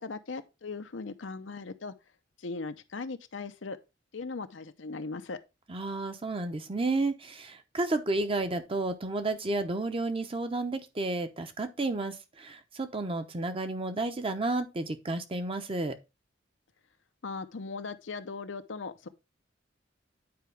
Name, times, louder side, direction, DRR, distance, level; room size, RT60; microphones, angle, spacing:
voice 1, 0.0-1.9 2.4-3.8 4.1-5.4 17.2-19.1, left 4 dB, 90° left, 0.7 m, -38 dB
voice 2, 5.7-15.9, right 2 dB, 30° right, 0.8 m, -31 dB
9.5 x 4.7 x 3.4 m
head